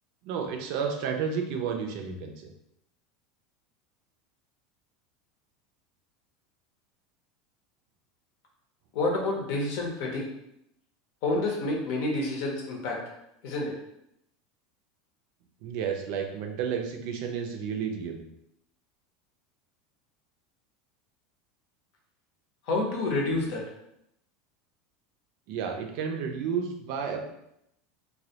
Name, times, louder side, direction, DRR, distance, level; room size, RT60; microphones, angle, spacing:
voice 1, 0.2-2.5 15.6-18.2 25.5-27.3, right 6 dB, 65° right, 3 dB, 0.4 m, -31 dB
voice 2, 8.9-10.3 11.2-13.0 13.4-13.8 22.7-23.6, left 2 dB, 65° left, 0 dB, 0.7 m, -28 dB
2.2 x 2.1 x 2.7 m, 0.80 s
supercardioid pair, 105°, 0 cm